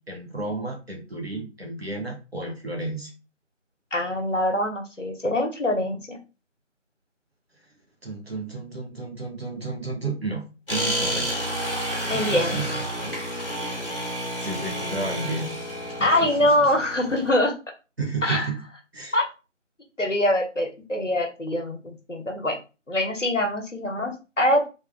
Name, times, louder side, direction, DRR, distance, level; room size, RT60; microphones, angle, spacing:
voice 1, 0.1-3.1 8.0-11.3 12.1-13.4 14.0-15.5 16.0-16.7 18.0-18.6 18.9-19.2, right 3 dB, 55° right, 0 dB, 1.0 m, -33 dB
voice 2, 3.9-6.2 12.1-12.6 16.0-17.5 18.2-18.5 19.1-19.2 20.0-22.5 22.9-24.7, left 1 dB, 75° left, 3 dB, 1.0 m, -24 dB
sound 1, 10.7-17.3, equal, 45° left, 1.1 m, -30 dB
3.4 x 2.6 x 2.2 m, 0.30 s
figure-of-eight pair, 180°, 38 cm